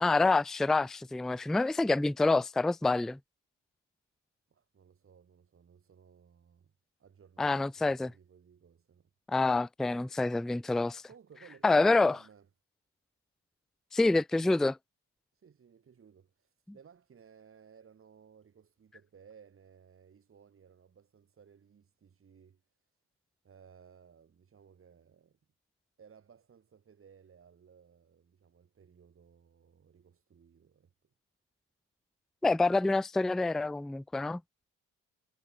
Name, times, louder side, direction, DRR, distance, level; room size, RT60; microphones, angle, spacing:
voice 1, 0.0-3.2 7.4-8.1 9.3-11.0 11.6-12.2 13.9-14.8 32.4-34.4, left 3 dB, ahead, 0.3 m, -27 dB
voice 2, 4.5-6.7 7.0-9.1 11.1-12.5 15.4-22.6 23.4-25.4 26.0-30.9, right 7 dB, 45° right, 3.9 m, -59 dB
cardioid pair, 90°, 30 cm